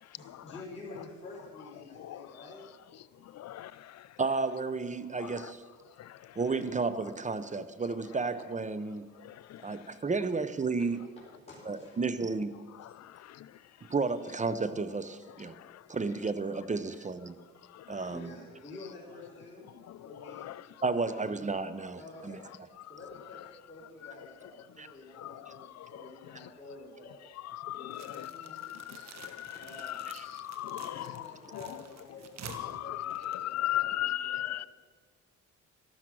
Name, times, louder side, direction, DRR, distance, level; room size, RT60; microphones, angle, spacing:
voice 1, 0.0-2.6 11.2-12.0 18.1-19.7 20.0-20.5 20.8-21.1 22.0-22.4 22.9-27.1 27.7-28.7 29.6-29.9 30.5-34.7, left 2 dB, 20° left, 4.4 m, -49 dB
voice 2, 3.4-3.7 9.5-9.6 20.4-20.5 25.2-25.3 27.5-28.3 28.6-28.8 29.2-31.1 32.6-34.7, left 14 dB, 60° left, 0.5 m, -35 dB
voice 3, 4.2-5.6 6.4-9.1 9.6-11.0 11.7-12.6 13.9-15.6 15.9-17.4 17.9-18.3 20.8-22.4 24.8-24.9 30.1-30.2, right 4 dB, 25° right, 0.7 m, -32 dB
sound 1, 27.9-34.0, right 5 dB, 60° right, 1.5 m, -50 dB
13.5 x 12.0 x 6.2 m
cardioid pair, 90°, 30 cm